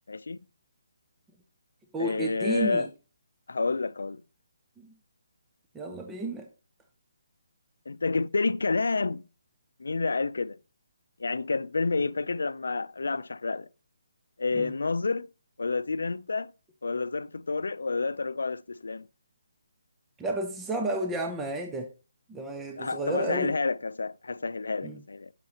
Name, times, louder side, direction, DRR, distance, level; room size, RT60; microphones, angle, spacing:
voice 1, 0.1-0.4 2.0-2.9 3.5-4.2 7.9-9.2 9.8-10.6 11.2-13.7 14.4-15.3 15.6-16.5 16.8-19.1 22.8-25.3, left 3 dB, 85° left, 0.4 m, -29 dB
voice 2, 1.9-2.9 4.8-4.9 5.7-6.5 14.5-14.7 20.2-21.9 22.3-23.5 24.8-25.0, right 2 dB, 10° right, 0.5 m, -32 dB
12.0 x 5.9 x 2.9 m
hypercardioid pair, 170°, 0 cm